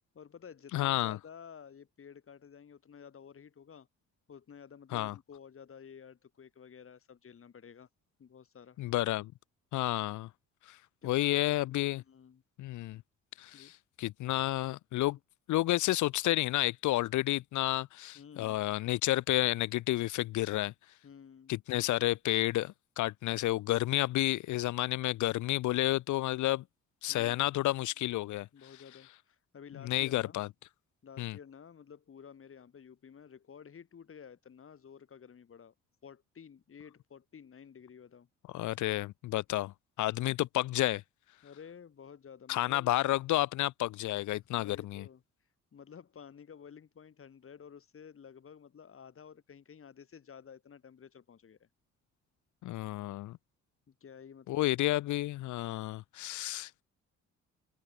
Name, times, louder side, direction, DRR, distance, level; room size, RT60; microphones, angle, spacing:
voice 1, 0.1-3.9 4.3-7.9 8.2-8.8 11.0-11.4 11.7-11.8 12.0-12.4 13.5-13.7 18.1-18.6 21.0-21.5 28.5-30.4 31.0-35.7 36.0-38.3 41.4-43.1 44.5-45.2 45.7-51.7 53.9-54.8, left 7 dB, 45° left, 3.3 m, -52 dB
voice 2, 0.7-1.2 4.9-5.1 8.8-9.3 9.7-10.3 10.7-10.8 11.0-12.0 12.6-13.0 13.4-13.7 14.0-15.2 15.5-20.7 21.5-26.6 27.0-28.5 29.9-30.5 31.2-31.4 38.5-39.7 40.0-41.0 42.5-45.1 52.6-53.4 54.5-56.7, left 16 dB, 75° left, 0.7 m, -31 dB
open air
cardioid pair, 90°, 30 cm